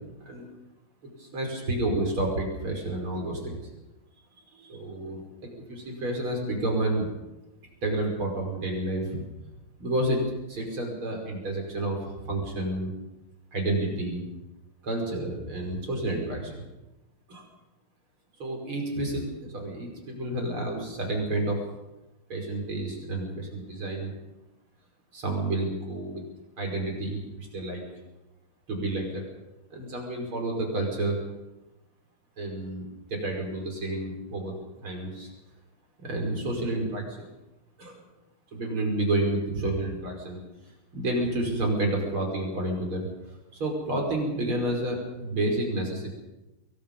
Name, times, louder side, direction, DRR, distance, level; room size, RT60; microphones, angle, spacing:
voice 1, 1.2-3.6 4.5-7.1 7.8-9.3 9.8-10.2 10.5-12.9 13.5-14.2 14.8-16.6 17.3-17.4 18.4-21.6 22.3-24.1 25.1-26.2 26.6-27.8 28.7-29.2 29.7-31.2 32.4-34.5 34.8-35.3 36.0-37.3 37.8-38.0 38.5-40.4 40.9-43.1 43.5-46.2, right 1 dB, 80° right, 1 dB, 6.4 m, -30 dB
26.5 x 22.5 x 5.5 m, 0.99 s
omnidirectional pair, 2.3 m